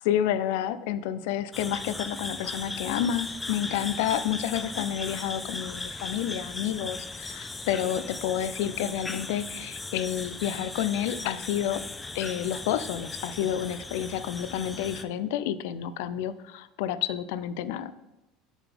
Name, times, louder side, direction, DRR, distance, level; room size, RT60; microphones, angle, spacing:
voice 1, 0.1-11.9 12.1-17.9, left 10 dB, 80° left, 15 dB, 0.4 m, -30 dB
sound 1, 1.5-15.0, left 2 dB, 10° left, 0.4 m, -38 dB
6.9 x 3.9 x 5.9 m, 1.0 s
cardioid pair, 150°, 0 cm